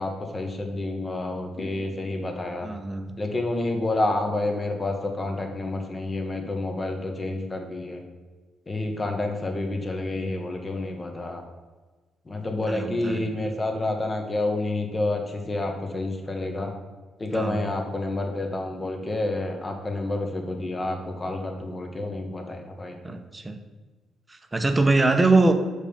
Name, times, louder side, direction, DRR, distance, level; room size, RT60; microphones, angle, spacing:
voice 1, 0.0-2.7 3.2-8.0 8.7-11.4 12.3-16.7 17.2-23.0, left 2 dB, 25° left, 3 dB, 1.4 m, -29 dB
voice 2, 2.6-3.1 9.8-9.9 12.4-13.3 17.3-17.7 23.0-23.6 24.3-25.5, right 2 dB, 20° right, 7 dB, 0.8 m, -23 dB
7.1 x 5.0 x 5.2 m, 1.3 s
cardioid pair, 90°, 0 cm